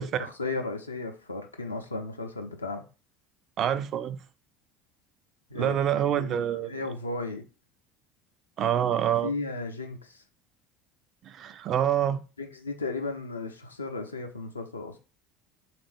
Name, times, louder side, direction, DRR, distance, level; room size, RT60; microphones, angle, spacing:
voice 1, 0.0-2.8 5.5-7.4 9.2-10.2 12.4-14.9, left 3 dB, 80° left, 0.5 m, -35 dB
voice 2, 3.6-4.2 5.5-6.8 8.6-9.3 11.2-12.2, right 10 dB, 40° right, 0.3 m, -26 dB
3.7 x 2.5 x 3.4 m
figure-of-eight pair, 65°, 0 cm